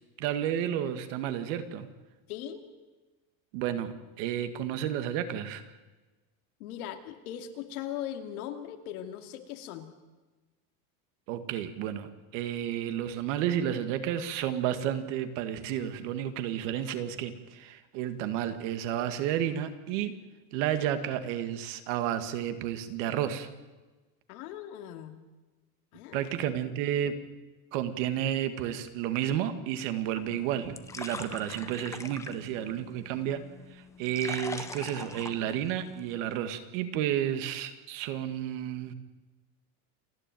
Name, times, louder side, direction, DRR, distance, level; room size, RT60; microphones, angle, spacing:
voice 1, 0.2-1.9 3.5-5.6 11.3-20.1 20.5-23.5 26.1-27.2 27.7-33.4 33.7-38.9, right 10 dB, 60° right, 10 dB, 2.0 m, -31 dB
voice 2, 2.3-2.6 6.6-9.9 24.3-25.2 25.9-26.4, left 10 dB, 80° left, 6 dB, 2.5 m, -39 dB
sound 1, 30.2-36.2, left 4 dB, 5° left, 0.6 m, -43 dB
28.5 x 10.5 x 9.2 m, 1.2 s
cardioid pair, 170°, 43 cm